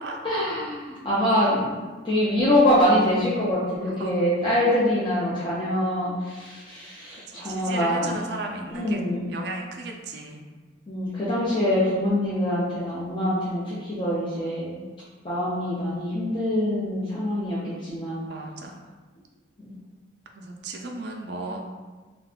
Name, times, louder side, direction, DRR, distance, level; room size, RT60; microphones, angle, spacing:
voice 1, 0.2-1.7 2.0-8.2 8.7-9.3 10.9-14.8 15.2-18.2 19.6-19.7, left 1 dB, 25° left, -10 dB, 0.5 m, -24 dB
voice 2, 3.8-4.2 7.4-9.0 9.3-10.4 18.3-18.8 20.3-21.6, right 2 dB, 60° right, 2 dB, 0.4 m, -35 dB
2.4 x 2.3 x 3.5 m, 1.3 s
head